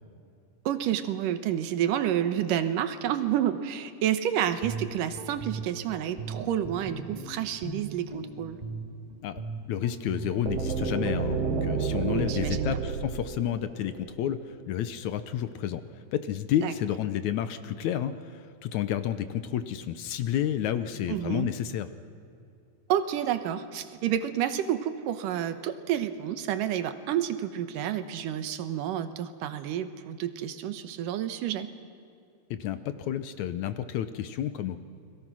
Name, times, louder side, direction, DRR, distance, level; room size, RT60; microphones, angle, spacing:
voice 1, 0.7-8.6 12.1-12.8 16.6-16.7 21.1-21.5 22.9-31.7, right 10 dB, 80° right, 10 dB, 2.7 m, -29 dB
Guitar, 4.4-12.4, right 2 dB, 15° right, 2.6 m, -39 dB
voice 2, 9.7-21.9 32.5-34.8, left 10 dB, 70° left, 11 dB, 2.0 m, -30 dB
sound 1, 10.5-14.4, right 6 dB, 60° right, 2.1 m, -31 dB
30.0 x 21.5 x 6.2 m, 2.5 s
omnidirectional pair, 3.8 m